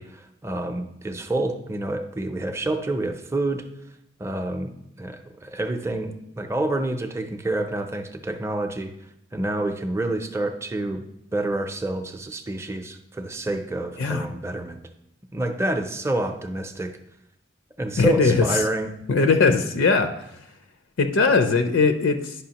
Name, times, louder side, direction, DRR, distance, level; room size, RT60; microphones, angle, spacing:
voice 1, 0.0-3.7 4.2-4.7 5.0-8.9 9.3-11.0 11.3-14.8 15.3-16.9 17.8-18.9, right 2 dB, 15° right, 5 dB, 0.5 m, -28 dB
voice 2, 18.0-18.6 19.1-20.1 21.0-22.3, left 4 dB, 80° left, 7 dB, 0.5 m, -20 dB
10.5 x 5.4 x 2.9 m, 0.79 s
head